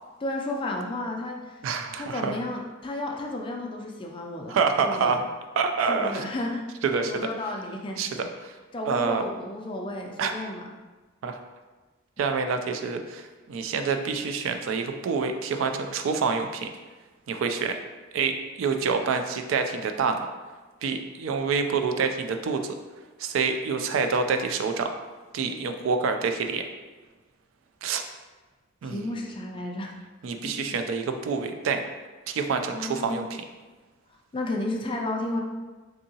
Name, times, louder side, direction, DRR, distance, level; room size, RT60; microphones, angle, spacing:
voice 1, 0.2-1.6 2.0-4.6 4.8-5.2 5.8-6.6 7.1-8.0 8.7-10.6 28.8-29.9 32.7-33.3 34.3-35.4, left 1 dB, 25° left, 1 dB, 0.3 m, -32 dB
voice 2, 1.6-2.4 4.5-5.2 5.6-6.2 6.8-7.3 8.0-8.6 8.9-9.2 10.2-10.3 11.2-11.4 12.2-16.7 17.3-17.8 18.1-20.3 20.8-22.8 23.2-24.9 25.3-26.7 27.8-28.0 28.8-29.2 30.2-31.8 32.3-33.4, right 5 dB, 75° right, 6 dB, 0.3 m, -27 dB
3.5 x 2.7 x 2.7 m, 1.2 s
head